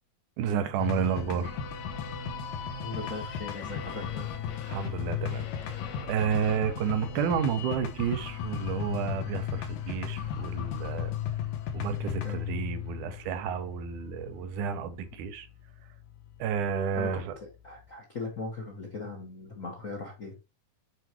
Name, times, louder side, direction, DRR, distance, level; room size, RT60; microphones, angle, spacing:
voice 1, 0.4-1.5 4.7-11.2 11.7-15.5 16.4-17.3, right 7 dB, 85° right, 2.3 m, -31 dB
sound 1, 0.8-17.9, left 8 dB, 75° left, 2.3 m, -36 dB
voice 2, 2.8-4.3 12.2-12.4 16.9-20.3, left 3 dB, 50° left, 1.0 m, -39 dB
8.0 x 4.7 x 3.0 m
omnidirectional pair, 3.5 m